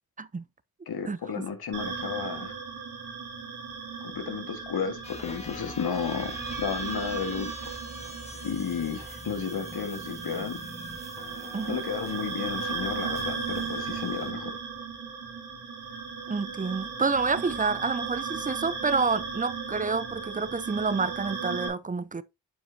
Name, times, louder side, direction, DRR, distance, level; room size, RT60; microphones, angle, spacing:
voice 1, 0.9-2.5 4.0-7.6 8.4-10.6 11.7-14.6, left 6 dB, 75° left, 1.6 m, -33 dB
sound 1, 1.7-21.7, right 5 dB, 85° right, 2.3 m, -36 dB
sound 2, 5.0-14.3, left 1 dB, 15° left, 1.6 m, -44 dB
voice 2, 16.3-22.2, right 4 dB, 20° right, 0.6 m, -28 dB
8.9 x 5.3 x 2.7 m
cardioid pair, 65°, 38 cm